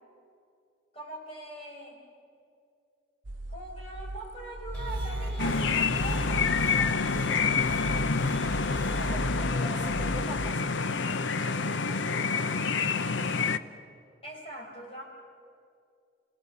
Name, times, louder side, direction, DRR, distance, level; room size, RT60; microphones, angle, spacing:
voice 1, 0.9-2.0 3.5-8.0 9.0-9.5 14.2-15.0, right 1 dB, 30° left, -1 dB, 5.0 m, -42 dB
sound 1, 3.2-10.6, right 1 dB, 75° right, 0.8 m, -36 dB
sound 2, 4.7-9.1, right 1 dB, 10° left, 5.2 m, -42 dB
sound 3, 5.4-13.6, left 4 dB, 80° left, 0.7 m, -28 dB
voice 2, 8.9-12.7, left 1 dB, 5° right, -1 dB, 2.3 m, -44 dB
29.5 x 17.5 x 7.0 m, 2.4 s
head